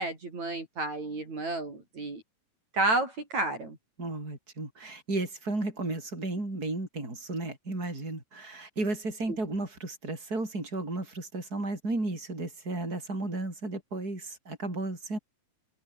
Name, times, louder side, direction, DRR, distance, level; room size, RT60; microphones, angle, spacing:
voice 1, 0.0-2.2 2.7-3.8, right 2 dB, 50° right, 7.4 m, -31 dB
voice 2, 4.0-15.2, right 2 dB, 25° right, 8.2 m, -34 dB
omnidirectional pair, 4.2 m